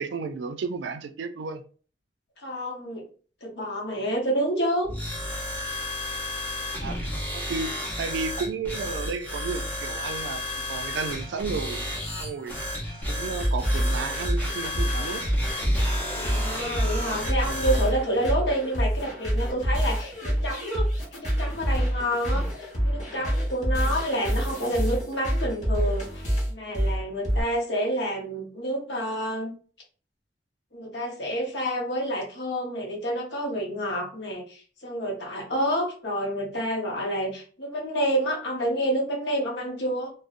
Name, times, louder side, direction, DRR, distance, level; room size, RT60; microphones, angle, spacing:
voice 1, 0.0-1.6 6.8-7.0 7.3-10.4 10.7-11.8 12.2-12.6 13.1-15.2, right 4 dB, 80° right, 0.3 m, -32 dB
voice 2, 2.4-3.0 3.4-4.9 16.2-29.5 30.7-40.1, equal, 70° left, 0.8 m, -29 dB
sound 1, 4.8-17.9, left 1 dB, 10° left, 0.6 m, -32 dB
sound 2, 13.0-27.4, equal, 40° left, 0.9 m, -27 dB
2.5 x 2.0 x 2.4 m
head